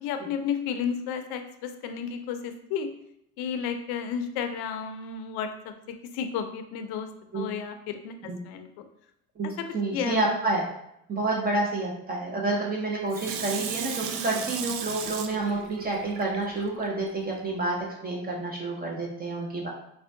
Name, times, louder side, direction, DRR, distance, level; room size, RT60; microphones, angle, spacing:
voice 1, 0.0-2.9 3.4-7.1 7.3-8.1 8.4-8.8 9.9-10.3, left 7 dB, 70° left, 8 dB, 0.5 m, -32 dB
voice 2, 9.4-10.7 11.1-17.8 18.0-19.7, right 2 dB, 25° right, -2 dB, 0.5 m, -29 dB
Water tap faucet / Sink (filling or washing), 13.1-16.9 17.4-17.5, right 7 dB, 75° right, 0.5 m, -35 dB
4.2 x 2.2 x 2.6 m, 0.77 s
cardioid pair, 120°, 41 cm